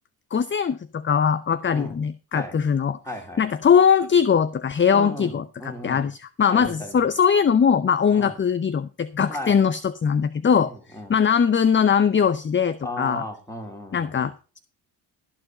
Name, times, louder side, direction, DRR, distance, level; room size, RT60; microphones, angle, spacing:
voice 1, 0.3-3.0 3.4-13.2 13.9-14.6, left 7 dB, 25° left, 16 dB, 0.6 m, -21 dB
voice 2, 3.0-3.4 4.9-6.1 6.5-7.0 8.1-8.4 9.3-9.6 10.5-11.2 12.8-14.2, left 1 dB, 5° left, 2 dB, 4.0 m, -36 dB
14.5 x 4.8 x 6.6 m, 0.35 s
supercardioid pair, 60°, 49 cm